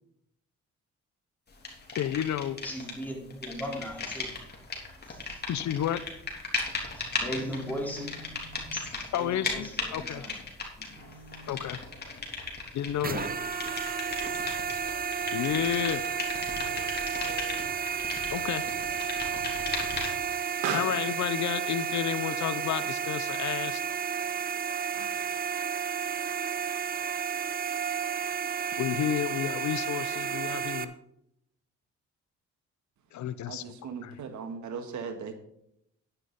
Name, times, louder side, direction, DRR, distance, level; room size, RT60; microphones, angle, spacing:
sound 1, 1.6-3.0 3.3-20.3, left 3 dB, 35° left, 3.4 m, -37 dB
voice 1, 2.0-2.6 5.5-6.0 9.1-10.2 11.5-11.8 12.7-13.3 15.3-16.0 18.3-18.7 20.7-23.8 28.8-30.9 33.1-34.2, left 10 dB, 70° left, 14 dB, 0.7 m, -31 dB
voice 2, 2.6-4.4 5.1-5.4 6.8-10.3 10.7-11.6, equal, 5° left, -1 dB, 4.1 m, -39 dB
sound 2, 13.0-30.8, right 7 dB, 30° right, 0.9 m, -32 dB
Explosion, 17.1-25.4, right 6 dB, 90° right, 1.9 m, -43 dB
voice 3, 33.5-35.3, right 5 dB, 70° right, 7 dB, 1.8 m, -38 dB
11.0 x 9.9 x 4.1 m, 0.76 s
cardioid pair, 90°, 30 cm